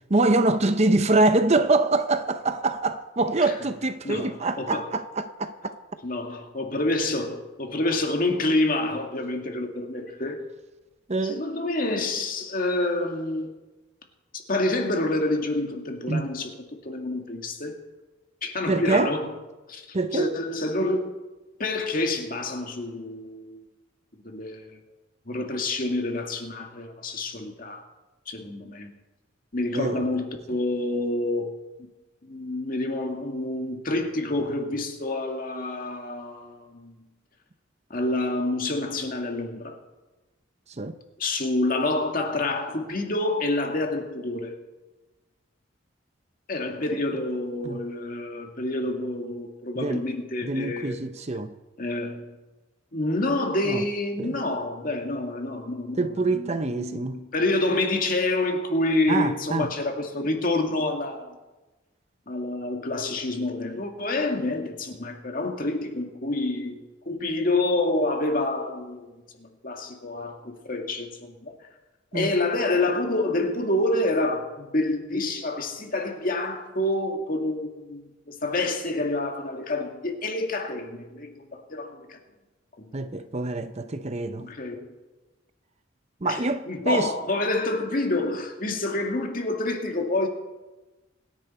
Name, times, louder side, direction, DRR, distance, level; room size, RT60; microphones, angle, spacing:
voice 1, 0.1-5.8 11.1-11.4 16.1-16.2 18.7-19.1 19.9-20.3 29.7-30.0 40.8-40.9 47.6-47.8 49.8-50.0 50.4-51.5 53.7-53.8 54.2-54.3 56.0-57.2 59.1-59.7 72.1-72.3 82.9-84.5 86.2-87.1, right 2 dB, 35° right, 0.7 m, -24 dB
voice 2, 4.0-4.9 6.0-10.5 11.2-13.5 14.5-16.5 16.8-17.8 18.4-19.3 19.7-21.2 21.6-23.6 24.2-24.8 25.3-27.8 28.3-28.9 29.5-31.6 32.2-36.9 37.9-39.8 41.2-44.6 46.5-51.1 51.8-52.3 52.9-61.4 62.3-69.1 69.4-71.6 72.1-82.2 82.8-82.9 84.4-84.9 86.2-90.3, left 2 dB, 45° left, 2.0 m, -28 dB
26.0 x 10.5 x 4.4 m
head